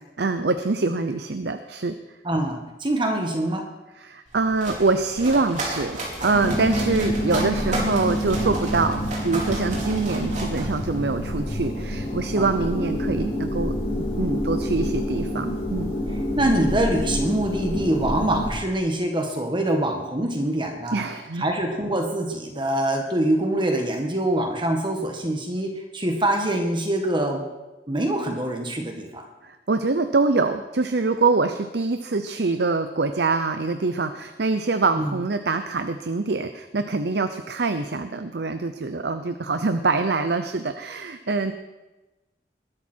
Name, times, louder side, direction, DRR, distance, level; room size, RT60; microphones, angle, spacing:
voice 1, 0.2-2.0 4.0-15.9 20.9-21.5 29.4-41.5, right 3 dB, 70° right, 9 dB, 0.8 m, -24 dB
voice 2, 2.2-3.7 12.4-12.5 16.4-21.0 21.4-27.4 27.9-29.2 35.0-35.2, right 1 dB, 30° right, 3 dB, 1.8 m, -24 dB
sound 1, 4.3-11.3, right 2 dB, 45° right, 4.7 m, -33 dB
sound 2, 6.3-18.5, equal, 35° left, 6.9 m, -27 dB
21.0 x 12.5 x 4.6 m, 1.1 s
head